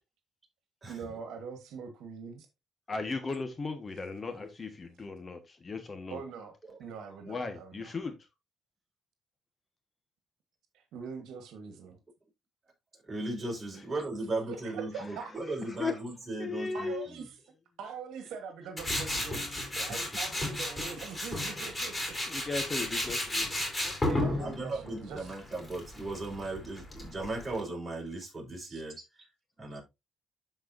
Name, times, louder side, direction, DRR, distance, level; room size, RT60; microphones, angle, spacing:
voice 1, 0.9-2.5 6.1-8.0 10.7-12.0 14.5-15.3 16.7-17.3 17.8-19.4 19.8-22.2 24.1-25.3 28.7-28.8, right 6 dB, 85° right, 1.4 m, -43 dB
voice 2, 2.9-6.2 7.3-8.1 15.8-15.9 16.4-17.1 22.3-24.2, left 4 dB, 35° left, 1.4 m, -37 dB
voice 3, 13.1-17.2 19.9-20.0 24.4-29.0 29.6-29.8, right 2 dB, 25° right, 4.9 m, -37 dB
Tools, 18.8-27.6, left 1 dB, 15° left, 3.7 m, -34 dB
12.0 x 4.7 x 2.6 m
cardioid pair, 90°, 0 cm